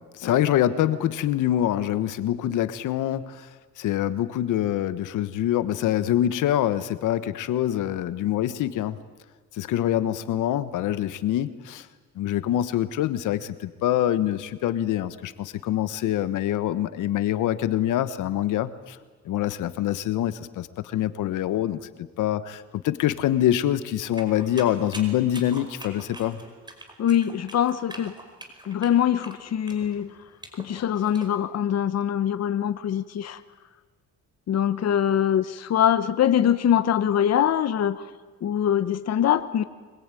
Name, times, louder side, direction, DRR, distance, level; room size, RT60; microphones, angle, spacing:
voice 1, 0.0-3.5 3.8-9.0 9.5-11.9 12.1-19.0 19.2-26.4, left 12 dB, 85° left, 13 dB, 1.3 m, -25 dB
sound 1, 24.1-31.3, right 2 dB, 15° right, 5.0 m, -43 dB
voice 2, 27.0-28.1 28.6-30.1 30.5-33.4 34.5-38.1 38.4-39.6, left 10 dB, 55° left, 13 dB, 1.1 m, -23 dB
25.0 x 21.5 x 9.1 m, 1.4 s
cardioid pair, 90°, 30 cm